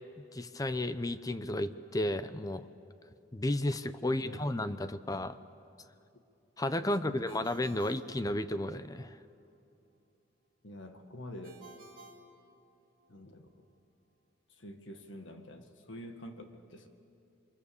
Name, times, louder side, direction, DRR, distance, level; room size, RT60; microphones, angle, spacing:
voice 1, 0.3-2.7 3.3-5.4 6.6-9.2, left 1 dB, 20° left, 12 dB, 0.6 m, -33 dB
voice 2, 4.0-4.5 6.8-7.6 10.6-11.7 13.1-13.5 14.5-16.9, left 1 dB, 70° left, 6 dB, 1.8 m, -48 dB
Ringtone, 7.3-8.9 11.4-13.1, right 2 dB, 50° right, 2.9 m, -55 dB
28.0 x 23.5 x 7.1 m, 2.7 s
head